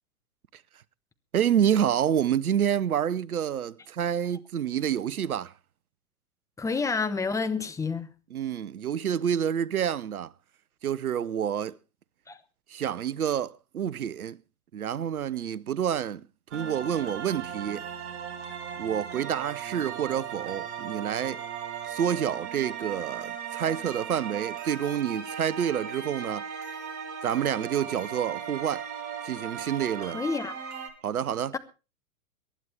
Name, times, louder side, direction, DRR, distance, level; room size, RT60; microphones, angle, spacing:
voice 1, 1.3-5.5 8.3-10.3 10.8-11.7 12.7-14.4 14.7-16.3 16.5-17.8 18.8-21.4 21.9-26.4 27.2-28.8 29.2-30.2 31.0-31.5, right 9 dB, 80° right, 0.8 m, -28 dB
voice 2, 6.6-8.1 12.3-12.4 30.0-30.5 31.5-31.6, left 4 dB, 5° left, 0.9 m, -29 dB
sound 1, 16.5-30.9, right 8 dB, 35° right, 2.9 m, -37 dB
23.0 x 11.0 x 3.4 m
hypercardioid pair, 110°, 43 cm